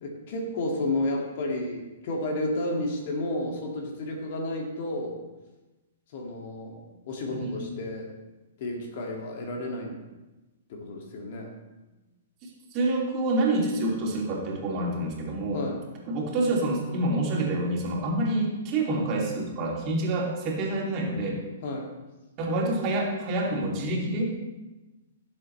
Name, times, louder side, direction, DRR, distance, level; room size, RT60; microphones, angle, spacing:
voice 1, 0.0-5.2 6.1-8.1 8.6-10.0 10.7-11.5 15.5-15.8 21.6-21.9, left 1 dB, 50° left, 1 dB, 2.2 m, -32 dB
voice 2, 7.3-7.7 12.7-15.6 16.1-21.4 22.4-24.3, right 2 dB, 35° right, -2 dB, 2.7 m, -27 dB
16.5 x 7.6 x 3.2 m, 1.1 s
figure-of-eight pair, 115°, 0 cm